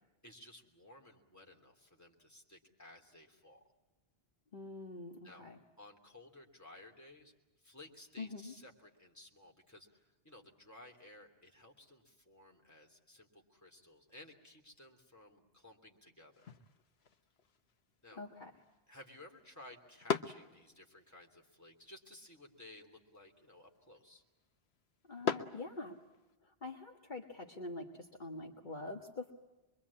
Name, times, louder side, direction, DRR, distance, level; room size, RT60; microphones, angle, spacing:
voice 1, 0.2-3.6 5.2-5.4 5.8-16.5 18.0-18.2 18.9-24.2, left 1 dB, 15° left, 0 dB, 3.3 m, -57 dB
voice 2, 4.5-5.6 8.2-8.5 18.2-18.5 25.1-26.0 26.4-29.3, left 2 dB, 50° left, 1 dB, 1.8 m, -45 dB
sound 1, 16.3-26.4, left 6 dB, 75° left, 1.3 m, -44 dB
26.0 x 23.0 x 8.6 m, 1.1 s
omnidirectional pair, 1.1 m